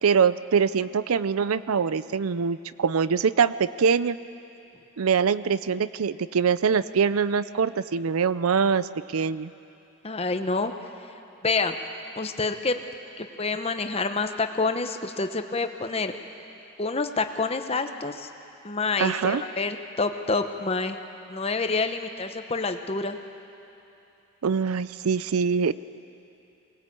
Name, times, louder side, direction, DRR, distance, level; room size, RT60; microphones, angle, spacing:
voice 1, 0.0-4.2 5.0-9.5 19.0-19.4 24.4-25.7, right 6 dB, 85° right, 15 dB, 0.5 m, -23 dB
voice 2, 10.0-10.7 11.4-11.7 12.2-12.8 13.2-16.1 16.8-18.3 18.6-21.0 21.3-23.2, left 3 dB, 30° left, 7 dB, 0.9 m, -27 dB
22.5 x 19.5 x 8.5 m, 2.8 s
head